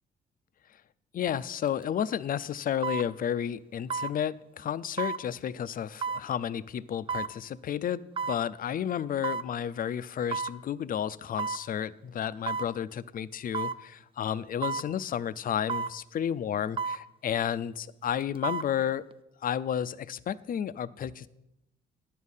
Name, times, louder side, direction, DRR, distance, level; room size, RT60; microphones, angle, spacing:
voice 1, 1.1-19.0 19.4-21.3, left 9 dB, 45° left, 17 dB, 0.4 m, -32 dB
sound 1, 1.7-1.8 2.8-3.1 3.9-4.1 5.0-5.2 6.0-6.3 7.1-7.3 8.2-8.4 9.2-9.5 10.3-10.6 11.4-11.6 12.5-12.7 13.5-13.8 14.6-14.9 15.7-16.0 16.8-17.0 18.2-18.7 19.1-19.2, right 5 dB, 25° right, 0.4 m, -32 dB
10.5 x 6.5 x 5.5 m, 0.87 s
cardioid pair, 90°, 20 cm